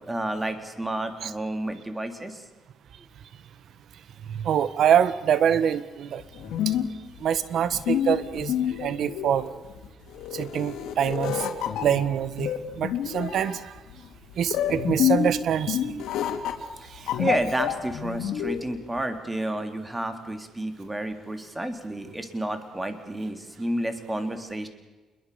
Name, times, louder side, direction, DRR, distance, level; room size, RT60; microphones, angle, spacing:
voice 1, 0.0-2.4 16.8-24.7, right 1 dB, 15° right, 7 dB, 3.6 m, -31 dB
voice 2, 4.3-6.2 6.6-6.7 7.2-8.5 8.8-9.5 10.3-11.5 11.8-12.5 12.8-13.7 14.4-15.9, right 9 dB, 70° right, 15 dB, 1.5 m, -25 dB
sound 1, 6.2-18.7, left 9 dB, 85° left, 3.0 m, -28 dB
27.5 x 22.0 x 7.1 m, 1.2 s
cardioid pair, 90°, 0 cm